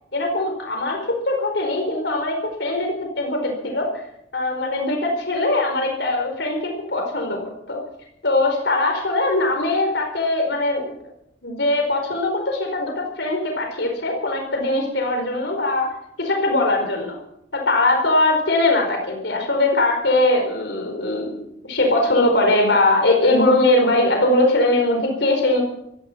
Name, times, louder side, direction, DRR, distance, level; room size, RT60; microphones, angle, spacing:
voice 1, 0.1-3.9 4.3-7.4 7.7-7.8 8.2-10.9 11.4-17.2 17.5-25.6, left 2 dB, 70° left, 2 dB, 4.7 m, -21 dB
17.0 x 14.5 x 5.7 m, 0.77 s
head